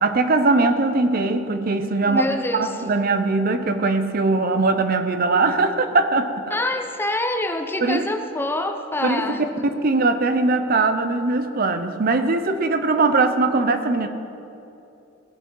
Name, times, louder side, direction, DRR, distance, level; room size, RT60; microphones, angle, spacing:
voice 1, 0.0-6.5 7.8-8.1 9.0-9.4 9.8-14.1, right 3 dB, 50° right, 8 dB, 0.6 m, -21 dB
voice 2, 2.1-2.9 6.5-9.7, left 1 dB, 10° left, 6 dB, 0.6 m, -26 dB
17.5 x 6.0 x 5.5 m, 2.8 s
head